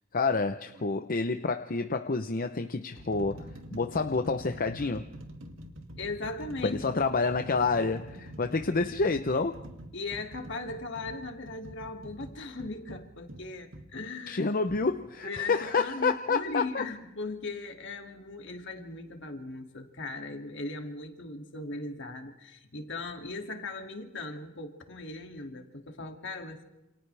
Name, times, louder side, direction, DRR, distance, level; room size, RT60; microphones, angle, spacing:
voice 1, 0.1-3.4 3.7-5.1 6.6-9.6 14.3-16.8, left 4 dB, 45° left, 7 dB, 0.8 m, -28 dB
sound 1, 0.7-0.9 1.8-2.0 2.6-13.9 14.7-14.9, equal, 75° right, 2.3 m, -46 dB
voice 2, 6.0-6.8 9.9-14.5 15.2-26.6, left 3 dB, 65° left, 4 dB, 2.5 m, -38 dB
28.5 x 28.0 x 3.4 m, 0.97 s
head